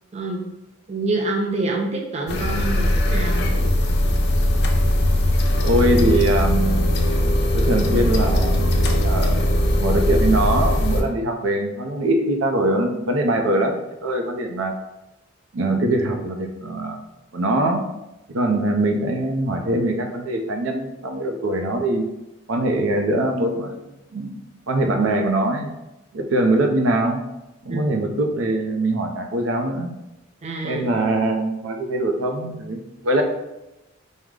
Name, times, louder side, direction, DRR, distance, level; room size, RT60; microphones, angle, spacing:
voice 1, 0.9-3.5 27.7-27.9 30.4-30.9, right 2 dB, 35° right, 0 dB, 0.5 m, -26 dB
sound 1, 2.3-11.0, left 1 dB, 55° left, 0.5 m, -19 dB
voice 2, 5.6-6.8 7.5-8.7 9.0-9.4 9.8-14.7 15.5-17.0 17.3-17.8 18.3-22.1 22.5-23.8 24.1-25.7 26.1-27.2 27.6-29.9 30.6-33.2, right 1 dB, 80° right, 4 dB, 0.5 m, -22 dB
4.7 x 2.1 x 3.7 m, 0.94 s
head